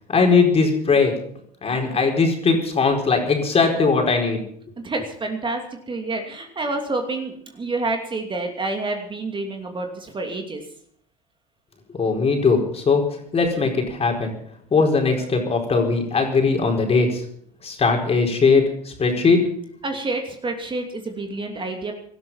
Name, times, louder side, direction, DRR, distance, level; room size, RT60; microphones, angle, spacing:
voice 1, 0.1-1.2 1.6-4.4 12.0-13.0 13.3-14.3 14.7-17.2 17.6-19.5, left 4 dB, 30° left, 2 dB, 4.6 m, -19 dB
voice 2, 4.8-10.6 19.8-21.9, right 2 dB, 25° right, 3 dB, 2.7 m, -28 dB
18.0 x 13.0 x 5.7 m, 0.65 s
hypercardioid pair, 75°, 21 cm